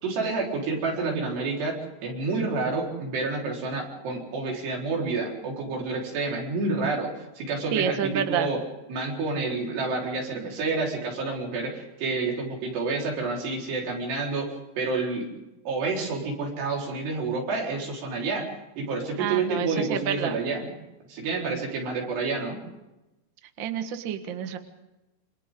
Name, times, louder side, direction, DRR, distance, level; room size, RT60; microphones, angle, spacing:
voice 1, 0.0-8.6 8.9-14.5 14.8-15.3 15.7-18.5 18.8-20.7 21.1-22.6, right 3 dB, 85° right, -1 dB, 6.4 m, -29 dB
voice 2, 7.7-8.5 19.2-20.4 23.6-24.6, right 9 dB, 65° right, 7 dB, 1.2 m, -28 dB
28.0 x 25.5 x 3.8 m, 0.99 s
omnidirectional pair, 4.7 m